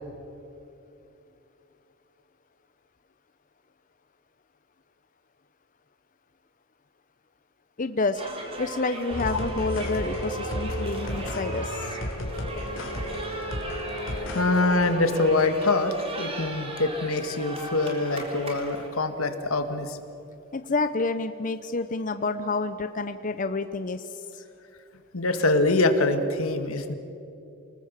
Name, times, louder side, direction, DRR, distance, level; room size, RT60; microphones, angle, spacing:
voice 1, 7.8-8.2 8.6-12.0 20.5-24.4, left 3 dB, 40° left, 10 dB, 0.7 m, -29 dB
sound 1, 8.1-18.9, right 2 dB, 25° right, 3.4 m, -37 dB
sound 2, 9.1-14.9, equal, 70° left, 3.3 m, -33 dB
voice 2, 14.1-20.0 25.1-27.0, left 2 dB, 90° left, 8 dB, 1.8 m, -24 dB
28.0 x 20.0 x 7.4 m, 2.8 s
head